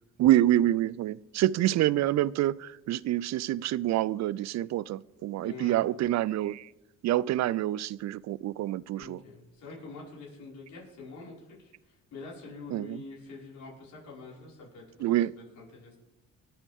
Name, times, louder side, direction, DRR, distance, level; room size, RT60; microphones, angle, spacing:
voice 1, 0.2-6.7 7.0-9.2 12.7-13.0 15.0-15.4, right 13 dB, 60° right, 21 dB, 0.5 m, -27 dB
voice 2, 5.4-5.8 9.0-15.2 15.6-16.0, left 3 dB, 75° left, -4 dB, 5.3 m, -46 dB
26.0 x 8.6 x 3.6 m, 1.0 s
cardioid pair, 90°, 30 cm